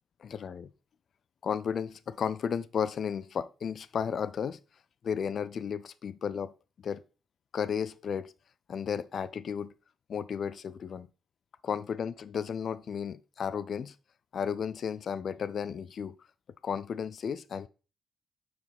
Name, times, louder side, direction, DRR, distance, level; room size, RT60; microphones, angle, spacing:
voice 1, 0.2-0.7 1.4-4.6 5.0-6.5 6.8-7.0 7.5-8.3 8.7-9.7 10.1-11.1 11.6-13.9 14.3-16.2 16.6-17.7, left 7 dB, 60° left, 0.4 m, -33 dB
6.0 x 4.8 x 3.4 m
cardioid pair, 80°, 0 cm